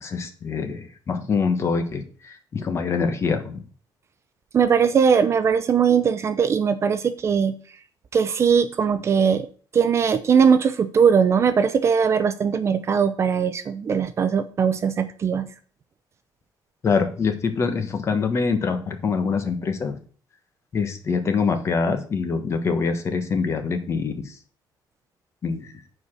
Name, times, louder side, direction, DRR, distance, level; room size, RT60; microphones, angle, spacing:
voice 1, 0.0-3.6 16.8-19.9 20.7-24.1 25.4-25.6, left 5 dB, 35° left, 7 dB, 1.2 m, -24 dB
voice 2, 4.5-7.5 8.1-9.5 9.7-15.5, right 6 dB, 35° right, 11 dB, 0.5 m, -20 dB
8.0 x 4.9 x 6.2 m, 0.43 s
cardioid pair, 175°, 8 cm